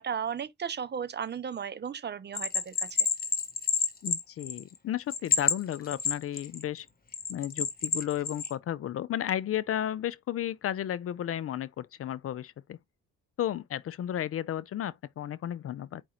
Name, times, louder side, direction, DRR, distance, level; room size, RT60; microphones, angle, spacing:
voice 1, 0.0-3.1, right 7 dB, 35° right, 0.6 m, -35 dB
Bell, 2.3-4.8 5.1-6.6 7.1-8.5, left 6 dB, 30° left, 1.3 m, -29 dB
voice 2, 4.0-6.9 7.3-12.8 13.4-16.0, left 11 dB, 50° left, 0.5 m, -33 dB
4.9 x 2.4 x 4.2 m
cardioid pair, 90°, 30 cm